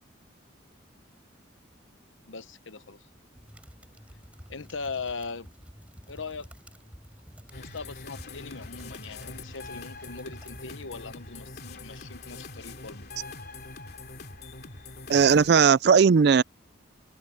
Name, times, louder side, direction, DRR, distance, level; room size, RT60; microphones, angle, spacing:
voice 1, 2.3-3.1 4.5-5.5 6.1-6.5 7.5-13.1, left 4 dB, 80° left, 1.0 m, -40 dB
sound 1, 3.3-11.3, equal, 5° right, 5.5 m, -50 dB
sound 2, 7.5-15.5, left 3 dB, 55° left, 3.1 m, -43 dB
voice 2, 15.1-16.4, right 6 dB, 55° right, 0.4 m, -18 dB
head